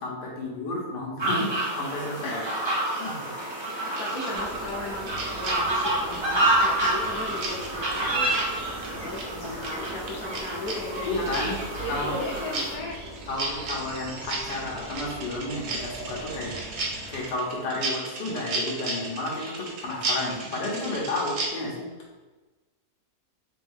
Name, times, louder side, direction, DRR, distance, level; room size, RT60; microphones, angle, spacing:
voice 1, 0.0-2.4 3.0-3.2 11.1-11.6 11.9-12.1 13.3-16.6 17.1-21.8, left 2 dB, 80° left, -2 dB, 1.5 m, -31 dB
sound 1, 1.2-12.7, right 1 dB, 30° right, 0.5 m, -29 dB
voice 2, 2.8-3.2 4.0-8.3 8.9-11.1 11.4-13.0, left 2 dB, 65° left, -2 dB, 1.1 m, -36 dB
sound 2, 3.4-21.5, right 2 dB, 75° right, 1.3 m, -36 dB
sound 3, 4.3-17.3, right 1 dB, 90° right, 0.5 m, -43 dB
3.8 x 2.6 x 3.6 m, 1.2 s
omnidirectional pair, 1.8 m